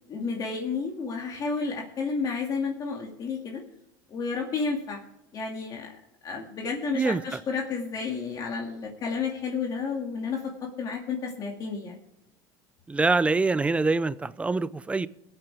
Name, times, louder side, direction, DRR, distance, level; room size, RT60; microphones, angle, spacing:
voice 1, 0.1-3.6 4.1-5.0 5.3-6.0 6.2-11.9, left 5 dB, 40° left, 0 dB, 2.3 m, -31 dB
voice 2, 12.9-15.1, right 3 dB, 10° right, 17 dB, 0.5 m, -24 dB
21.5 x 8.9 x 3.5 m, 0.88 s
supercardioid pair, 120°, 10 cm